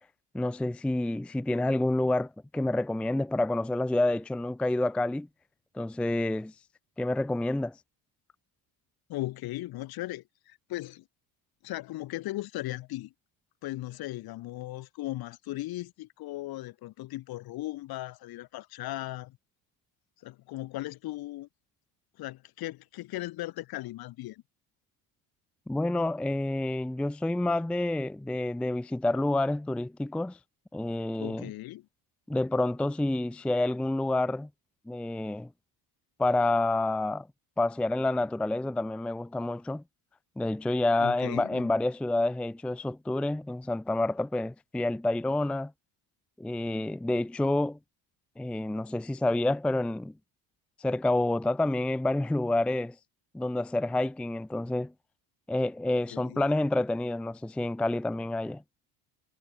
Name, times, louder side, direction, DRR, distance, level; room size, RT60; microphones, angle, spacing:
voice 1, 0.3-5.3 5.7-6.5 7.0-7.7 25.7-30.4 30.7-31.5 32.3-34.5 34.9-35.5 36.2-37.3 37.6-39.8 40.4-45.7 46.4-47.8 48.4-50.1 50.8-53.0 53.3-54.9 55.5-58.6, left 2 dB, 5° left, 0.5 m, -28 dB
voice 2, 9.1-11.0 11.6-13.1 13.6-19.4 20.2-21.5 22.2-24.4 31.2-31.9 41.0-41.7 55.9-56.5, left 17 dB, 55° left, 1.7 m, -37 dB
cardioid pair, 145°, 43 cm